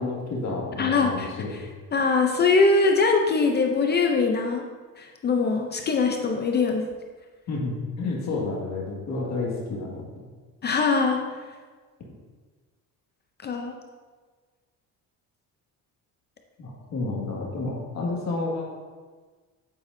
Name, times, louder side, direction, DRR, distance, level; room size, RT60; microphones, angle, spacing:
voice 1, 0.0-1.5 7.5-10.0 16.6-18.6, left 3 dB, 50° left, -3 dB, 1.9 m, -30 dB
voice 2, 0.8-1.3 1.9-4.6 5.0-6.8 10.6-11.2 13.4-13.7, left 4 dB, 30° left, 3 dB, 0.5 m, -22 dB
8.4 x 8.1 x 2.6 m, 1.4 s
cardioid pair, 175°, 35 cm